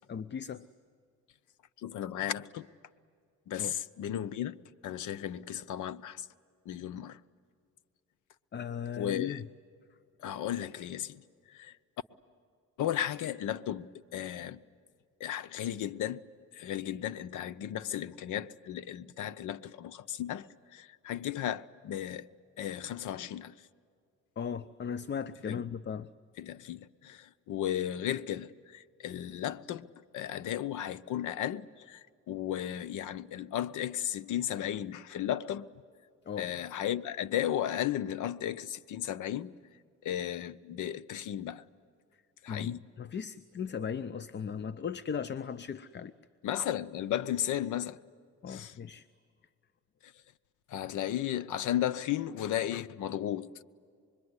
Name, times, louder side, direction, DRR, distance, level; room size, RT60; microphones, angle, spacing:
voice 1, 0.1-0.6 3.6-3.7 8.5-9.5 24.4-26.1 36.3-36.5 42.5-46.1 48.4-49.0, left 7 dB, 35° left, 0.6 m, -37 dB
voice 2, 1.8-2.7 3.5-6.3 6.7-7.2 9.0-9.4 10.2-11.2 11.5-11.7 12.8-14.6 15.2-16.2 16.5-20.5 20.7-22.3 22.6-23.5 25.5-25.6 26.4-35.7 36.4-39.5 40.0-41.6 42.4-42.8 46.4-48.0 48.5-48.8 50.7-53.6, left 11 dB, 80° left, 0.8 m, -35 dB
26.0 x 22.0 x 9.7 m
cardioid pair, 90°, 30 cm